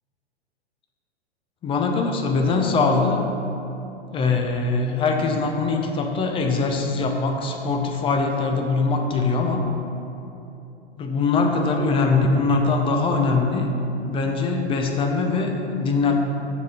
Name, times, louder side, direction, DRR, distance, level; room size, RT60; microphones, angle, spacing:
voice 1, 1.6-3.3 4.1-9.6 11.0-13.7 14.1-16.2, left 4 dB, 15° left, 3 dB, 0.5 m, -22 dB
6.6 x 5.0 x 5.5 m, 3.0 s
hypercardioid pair, 115°, 33 cm